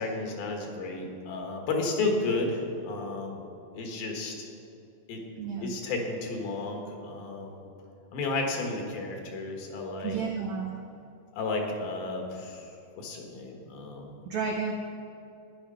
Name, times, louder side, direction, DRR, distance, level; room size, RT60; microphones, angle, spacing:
voice 1, 0.0-3.5 3.7-4.5 5.1-5.2 5.6-7.7 8.1-10.2 11.3-14.2, left 3 dB, 75° left, 2 dB, 3.2 m, -32 dB
voice 2, 5.4-5.7 10.0-10.7 14.2-14.7, right 5 dB, 80° right, 1 dB, 1.6 m, -31 dB
11.5 x 10.0 x 5.6 m, 2.7 s
omnidirectional pair, 4.4 m